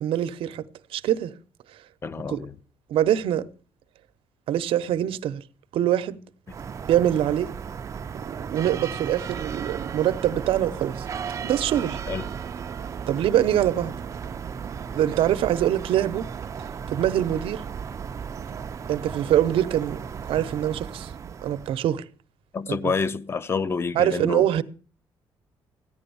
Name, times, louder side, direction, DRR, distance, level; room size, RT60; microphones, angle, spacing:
voice 1, 0.0-0.6 0.9-1.3 2.3-2.4 2.9-3.4 4.5-5.4 5.7-6.2 6.9-7.5 8.3-11.1 11.4-12.0 13.1-13.9 14.9-16.3 16.9-17.6 18.9-20.0 20.3-21.1 21.4-22.0 22.7-22.9 23.9-24.6, right 11 dB, 75° right, 0.9 m, -24 dB
voice 2, 2.0-2.5 12.1-12.3 22.5-24.5, left 5 dB, 25° left, 0.7 m, -28 dB
sound 1, 6.5-22.0, right 7 dB, 35° right, 0.6 m, -35 dB
14.5 x 10.5 x 7.0 m
cardioid pair, 155°, 9 cm